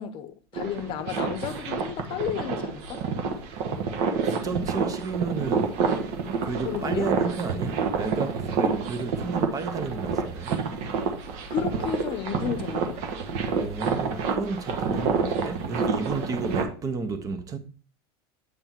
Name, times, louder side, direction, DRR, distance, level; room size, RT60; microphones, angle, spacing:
voice 1, 0.0-3.0 6.6-7.1 8.6-8.8 11.5-13.0, left 9 dB, 45° left, 0.7 m, -32 dB
sound 1, 0.5-16.6, right 5 dB, 60° right, 1.2 m, -28 dB
voice 2, 4.2-5.8 6.4-10.6 13.6-17.6, right 4 dB, 30° right, 0.8 m, -32 dB
8.0 x 3.5 x 4.4 m
supercardioid pair, 125°, 13 cm